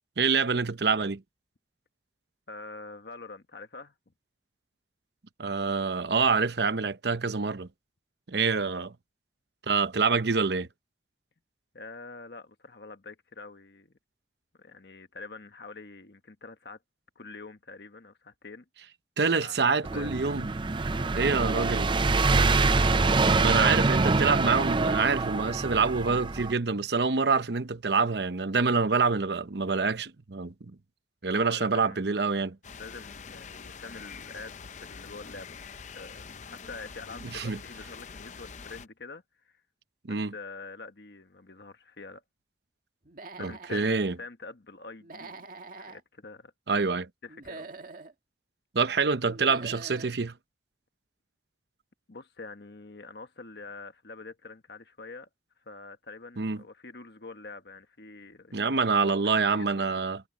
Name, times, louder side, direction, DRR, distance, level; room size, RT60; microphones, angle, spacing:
voice 1, 0.2-1.2 5.4-7.7 8.3-8.9 9.7-10.7 19.2-20.5 21.1-21.9 23.4-30.5 31.2-32.5 37.3-37.6 40.1-40.3 43.4-44.1 46.7-47.1 48.7-50.3 56.4-56.6 58.5-60.2, right 4 dB, 70° right, 0.8 m, -26 dB
voice 2, 2.5-3.9 11.7-13.9 14.6-16.8 17.1-18.6 19.2-20.1 20.8-21.6 31.2-32.3 32.8-39.6 40.1-42.2 43.4-45.5 45.8-46.5 47.2-47.7 52.1-55.3 55.6-60.1, left 3 dB, 65° left, 1.3 m, -46 dB
sound 1, 19.8-26.5, right 3 dB, 30° right, 0.5 m, -25 dB
sound 2, 32.6-38.9, left 5 dB, 45° left, 0.6 m, -45 dB
Human voice / Animal, 43.0-43.9 45.0-46.0 47.3-48.1 49.3-50.1, right 3 dB, 50° right, 1.9 m, -44 dB
head